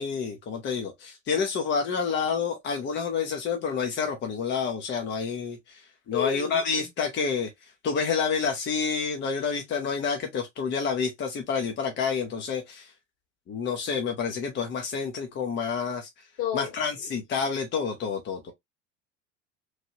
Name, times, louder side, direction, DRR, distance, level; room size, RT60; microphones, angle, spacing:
voice 1, 0.0-12.9 13.5-16.3 16.5-18.5, left 5 dB, 30° left, 0.8 m, -29 dB
voice 2, 6.1-6.6 16.4-16.7, left 10 dB, 60° left, 1.8 m, -30 dB
3.2 x 2.7 x 2.6 m
figure-of-eight pair, 75°, 35 cm